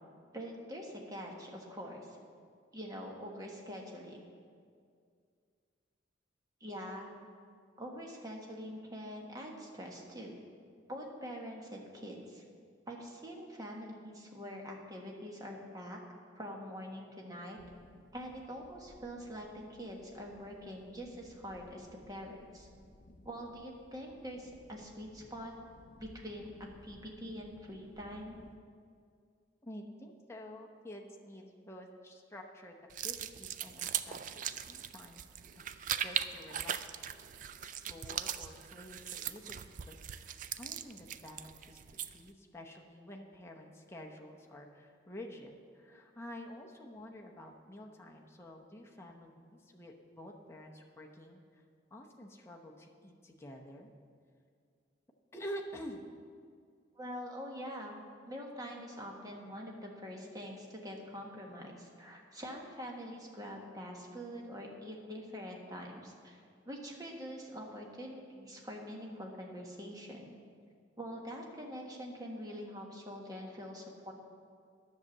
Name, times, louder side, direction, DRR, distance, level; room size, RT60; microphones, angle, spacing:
voice 1, 0.3-2.2 2.7-4.2 6.6-7.2 7.8-10.4 10.9-12.4 12.9-17.6 18.1-22.7 23.2-25.5 25.9-28.4 57.0-70.3 71.0-74.1, equal, 20° right, 0 dB, 1.4 m, -45 dB
sound 1, 17.6-28.6, left 1 dB, 45° left, 0.6 m, -60 dB
voice 2, 29.6-32.7 33.0-34.4 34.7-35.2 35.5-36.8 37.6-40.3 40.6-41.8 42.1-51.4 51.9-53.9 55.3-56.0 59.2-59.3, equal, 15° left, 0 dB, 0.9 m, -49 dB
sound 2, 32.9-42.3, right 9 dB, 45° right, 0.3 m, -40 dB
10.5 x 6.7 x 7.3 m, 2.2 s
head